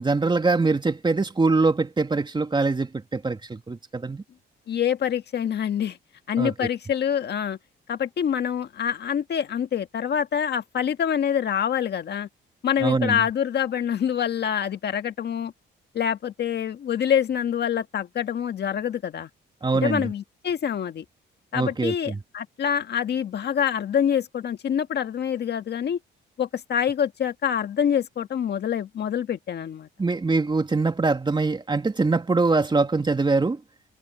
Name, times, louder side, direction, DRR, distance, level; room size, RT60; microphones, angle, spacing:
voice 1, 0.0-4.2 6.4-6.7 12.8-13.2 19.6-20.1 21.5-22.2 30.0-33.6, right 3 dB, 25° right, 2.8 m, -23 dB
voice 2, 4.7-6.0 6.3-7.6 7.9-12.3 12.6-15.5 15.9-19.3 19.8-21.0 21.5-26.0 26.4-29.9, left 8 dB, 55° left, 1.6 m, -26 dB
cardioid pair, 90°, 20 cm